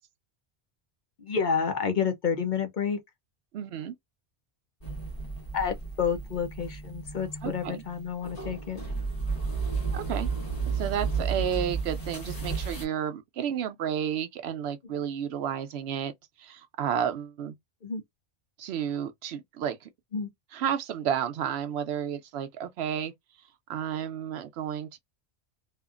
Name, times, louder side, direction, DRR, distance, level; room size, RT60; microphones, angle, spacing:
voice 1, 1.2-3.0 5.5-8.8 14.9-15.1 17.8-18.0 20.1-20.3, left 6 dB, 50° left, 0.7 m, -29 dB
voice 2, 3.5-3.9 7.4-7.8 9.9-10.3 10.7-16.1 16.4-17.5 18.6-19.9 20.5-23.1 23.7-25.0, right 9 dB, 75° right, 0.8 m, -31 dB
sound 1, 4.8-12.8, right 4 dB, 35° left, 1.4 m, -33 dB
2.8 x 2.4 x 2.4 m
omnidirectional pair, 1.1 m